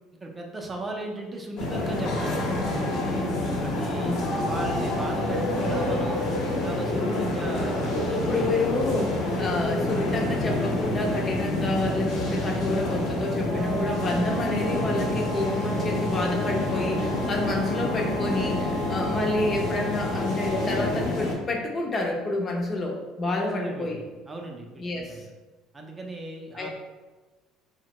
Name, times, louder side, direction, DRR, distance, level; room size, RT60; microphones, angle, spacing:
voice 1, 0.2-2.4 2.8-3.3 3.6-6.2 6.6-8.5 23.3-25.2 25.7-26.7, right 2 dB, 20° right, 1 dB, 0.5 m, -37 dB
sound 1, 1.6-21.4, left 1 dB, 75° left, 0.9 m, -28 dB
voice 2, 3.9-4.7 8.1-24.0 24.8-25.3 26.5-26.7, left 2 dB, 35° left, 0 dB, 0.6 m, -29 dB
sound 2, 13.5-21.2, equal, 70° right, 0.4 m, -35 dB
3.4 x 2.1 x 2.9 m, 1.2 s
supercardioid pair, 100°, 0 cm